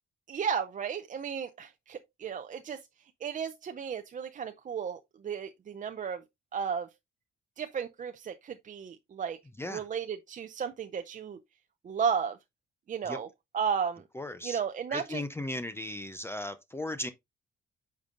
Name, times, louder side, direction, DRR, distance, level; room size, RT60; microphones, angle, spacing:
voice 1, 0.3-2.8 3.2-6.2 6.5-6.9 7.6-9.4 9.6-11.4 11.8-12.4 12.9-13.3 13.5-14.0 14.4-15.2, right 7 dB, 40° right, 0.5 m, -34 dB
voice 2, 14.1-14.6 14.9-17.1, left 1 dB, 10° left, 0.6 m, -36 dB
8.8 x 5.3 x 2.5 m
cardioid pair, 90°, 20 cm